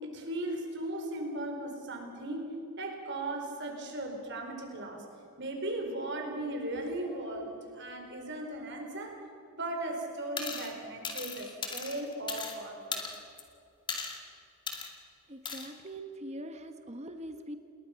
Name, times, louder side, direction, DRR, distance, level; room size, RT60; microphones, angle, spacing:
voice 1, 0.0-5.0 5.4-9.2 9.5-13.1, right 1 dB, 50° right, 3 dB, 4.7 m, -37 dB
sound 1, 10.4-10.7 11.0-12.6 12.9-13.4 13.9-14.2 14.7-14.9 15.5-15.7, left 4 dB, 20° left, 2.3 m, -37 dB
voice 2, 15.3-17.6, right 1 dB, 30° right, 7 dB, 1.2 m, -42 dB
28.5 x 21.0 x 5.9 m, 2.7 s
head